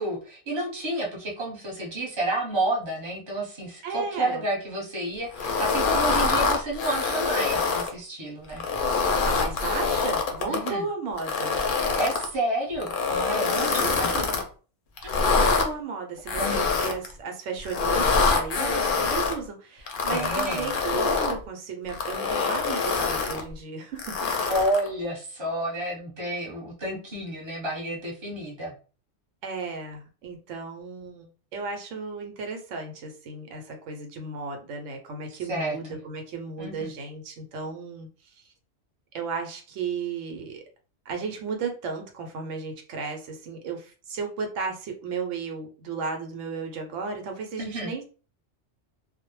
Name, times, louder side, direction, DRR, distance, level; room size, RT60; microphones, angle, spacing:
voice 1, 0.0-8.6 10.5-10.9 11.9-14.1 15.0-15.2 16.4-16.7 20.1-20.7 24.5-28.7 35.5-36.0 36.6-36.9 47.6-47.9, right 1 dB, 25° right, -2 dB, 0.8 m, -30 dB
voice 2, 3.8-4.4 9.2-11.6 13.7-14.4 15.1-24.3 29.4-38.5 39.1-40.6 41.1-48.0, right 4 dB, 85° right, 4 dB, 0.9 m, -34 dB
sound 1, 5.3-7.9 8.5-10.7 11.2-12.3 12.8-14.4 15.0-15.7 16.3-17.1 17.6-19.3 19.9-21.4 21.9-23.4 24.0-24.9, left 4 dB, 60° left, 0.6 m, -25 dB
2.2 x 2.0 x 3.0 m, 0.37 s
omnidirectional pair, 1.2 m